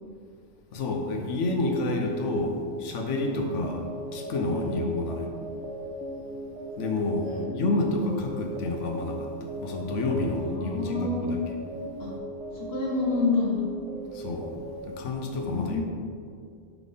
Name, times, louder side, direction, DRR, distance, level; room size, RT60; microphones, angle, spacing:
voice 1, 0.7-3.8 4.1-5.3 6.8-11.4 14.1-14.5 14.9-15.8, left 2 dB, 80° left, 2 dB, 1.1 m, -29 dB
sound 1, 3.1-14.8, right 1 dB, 70° right, 0.9 m, -38 dB
voice 2, 3.2-3.6 4.5-4.8 7.2-7.6 10.4-11.2 12.0-12.1 12.5-13.6 15.4-15.8, left 4 dB, 60° left, -4 dB, 1.3 m, -29 dB
4.6 x 4.1 x 5.1 m, 2.3 s
omnidirectional pair, 1.2 m